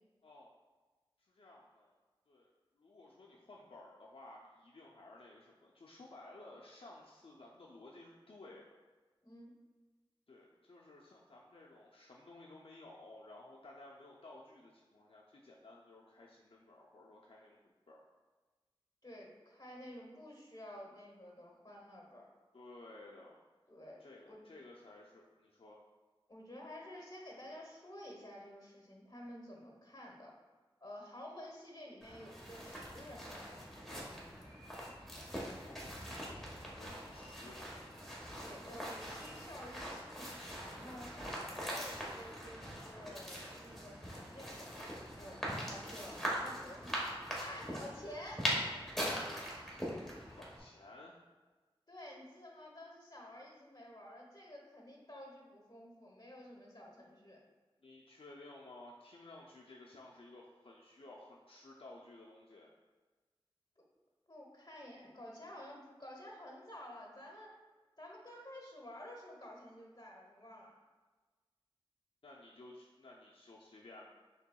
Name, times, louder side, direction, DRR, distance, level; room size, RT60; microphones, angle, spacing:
voice 1, 1.2-2.0 2.3-8.7 10.3-18.0 22.5-23.4 24.0-25.8 35.6-36.4 36.6-37.9 50.4-51.2 57.8-62.7 72.2-74.1, left 2 dB, 75° left, -3 dB, 0.4 m, -55 dB
voice 2, 9.2-9.5 19.0-22.3 23.7-24.4 26.3-30.3 30.8-33.6 38.4-41.1 41.5-47.0 47.4-48.5 51.9-57.4 63.8-63.9 64.3-67.5 68.0-70.8, left 1 dB, 45° left, -1 dB, 1.0 m, -51 dB
sound 1, 32.0-50.6, equal, 5° left, 1.1 m, -42 dB
5.6 x 3.4 x 2.2 m, 1.3 s
wide cardioid pair, 60°, 10 cm